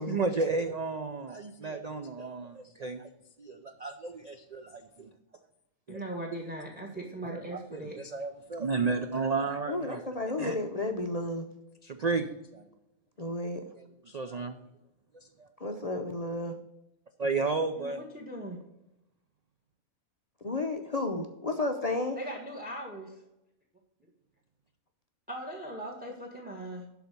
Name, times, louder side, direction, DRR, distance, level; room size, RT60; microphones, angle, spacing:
voice 1, 0.0-3.1 3.4-5.1 5.9-6.0 7.3-7.4 7.7-7.8 8.1-10.0 10.4-10.5 11.8-12.7 13.8-14.6 15.1-15.5 17.2-18.0, right 4 dB, 55° right, 7 dB, 0.4 m, -32 dB
voice 2, 5.9-8.0 17.8-18.6 22.1-23.2 25.3-26.8, right 1 dB, 5° right, 2 dB, 1.4 m, -39 dB
voice 3, 9.7-11.5 13.2-13.6 15.6-16.6 20.4-22.2, left 2 dB, 40° left, 4 dB, 0.6 m, -32 dB
11.5 x 4.1 x 6.7 m, 0.89 s
omnidirectional pair, 1.5 m